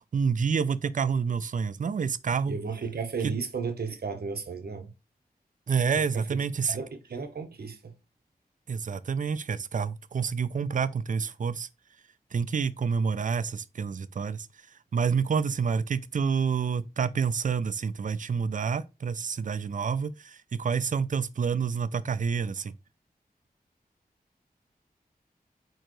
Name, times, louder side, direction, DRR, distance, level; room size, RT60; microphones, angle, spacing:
voice 1, 0.1-2.5 5.7-6.8 8.7-11.7 12.3-14.5 14.9-22.7, right 6 dB, 55° right, 0.4 m, -28 dB
voice 2, 2.5-4.9 5.9-6.4 6.7-7.9, right 5 dB, 80° right, 0.9 m, -34 dB
4.4 x 3.9 x 3.1 m
wide cardioid pair, 55°, 16 cm